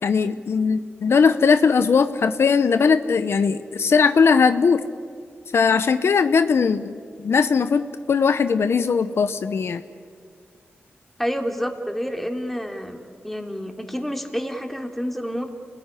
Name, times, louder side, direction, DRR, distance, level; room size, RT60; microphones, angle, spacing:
voice 1, 0.0-4.8 5.5-9.8, left 5 dB, 70° left, 11 dB, 0.9 m, -19 dB
voice 2, 11.2-15.5, equal, 5° left, 4 dB, 3.2 m, -29 dB
28.5 x 19.0 x 10.0 m, 2.1 s
cardioid pair, 55°, 4 cm